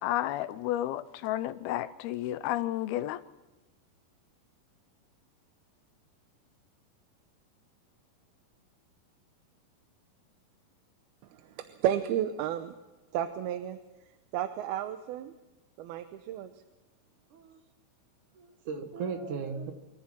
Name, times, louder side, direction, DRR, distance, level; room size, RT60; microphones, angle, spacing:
voice 1, 0.0-3.2, left 14 dB, 85° left, 15 dB, 2.7 m, -31 dB
voice 2, 11.3-12.7 13.1-13.8 14.3-15.3 15.8-16.5, right 10 dB, 85° right, 9 dB, 2.8 m, -32 dB
voice 3, 18.4-19.7, right 5 dB, 60° right, 6 dB, 2.9 m, -36 dB
25.0 x 14.5 x 7.4 m, 1.1 s
omnidirectional pair, 4.3 m